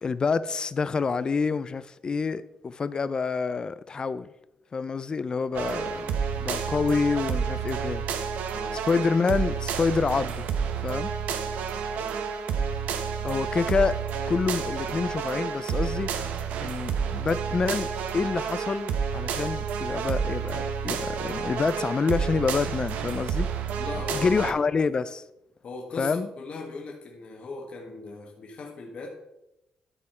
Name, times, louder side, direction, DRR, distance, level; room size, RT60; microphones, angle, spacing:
voice 1, 0.0-4.3 4.7-8.0 8.9-10.5 10.8-11.1 13.2-14.0 14.3-16.1 16.6-23.5 24.1-25.2 26.0-26.3, left 4 dB, 35° left, 0.4 m, -27 dB
sound 1, 5.5-24.5, right 6 dB, 85° right, 0.7 m, -30 dB
voice 2, 23.7-24.5 25.6-29.1, left 3 dB, 55° left, 1.5 m, -38 dB
12.0 x 4.3 x 4.3 m
cardioid pair, 95°, 2 cm